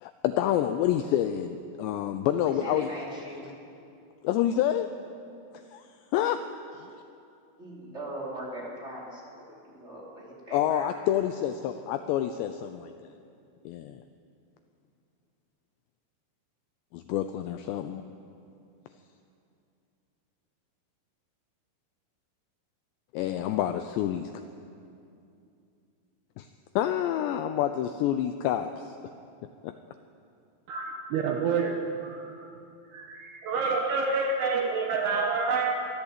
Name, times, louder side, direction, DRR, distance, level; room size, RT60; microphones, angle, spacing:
voice 1, 0.0-2.9 4.2-4.9 5.7-5.8 6.1-6.4 6.7-6.9 10.5-12.9 13.7-14.0 16.9-18.1 23.1-24.3 26.4-26.5 26.8-29.0 29.6-29.7, left 11 dB, 80° left, 9 dB, 2.6 m, -28 dB
voice 2, 2.3-3.5 7.6-10.9, right 1 dB, 15° right, -5 dB, 4.2 m, -40 dB
voice 3, 30.7-32.5 32.9-35.8, right 4 dB, 70° right, 3 dB, 2.7 m, -28 dB
23.5 x 14.0 x 8.2 m, 2.6 s
omnidirectional pair, 5.6 m